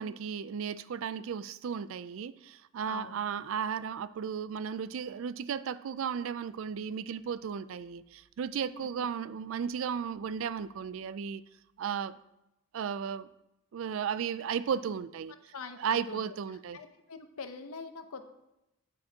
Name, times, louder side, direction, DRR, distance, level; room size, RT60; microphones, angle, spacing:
voice 1, 0.0-11.4 11.8-12.2 12.7-13.3 13.7-15.4 15.8-16.8, right 7 dB, 65° right, 0.3 m, -35 dB
voice 2, 2.9-3.2 15.5-16.2 16.7-18.3, left 4 dB, 80° left, 0.8 m, -43 dB
9.0 x 8.6 x 2.8 m
head